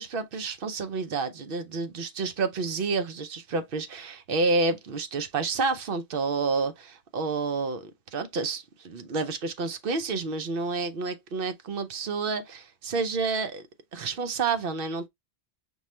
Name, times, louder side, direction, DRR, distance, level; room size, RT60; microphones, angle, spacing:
voice 1, 0.0-13.6 13.9-15.1, right 4 dB, 60° right, 0.8 m, -29 dB
5.4 x 2.3 x 3.1 m
omnidirectional pair, 1.1 m